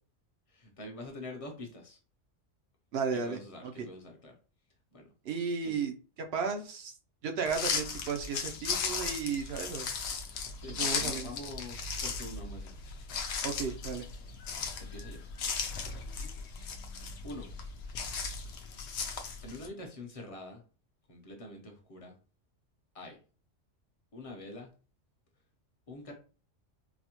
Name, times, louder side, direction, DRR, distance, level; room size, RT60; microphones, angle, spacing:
voice 1, 0.5-2.0 3.1-4.3 4.9-5.1 5.6-5.7 10.6-12.7 14.8-15.2 17.2-17.5 19.4-20.6 21.1-22.1 22.9-23.2 24.1-24.7 25.9-26.1, left 1 dB, 35° left, 1 dB, 0.7 m, -45 dB
voice 2, 2.9-3.9 5.3-5.9 6.3-6.9 7.2-9.9 10.8-11.3 13.4-14.1, right 5 dB, 65° right, 4 dB, 0.7 m, -34 dB
sound 1, 7.5-19.7, left 5 dB, 65° left, 0.8 m, -37 dB
4.0 x 2.1 x 2.9 m, 0.37 s
omnidirectional pair, 1.3 m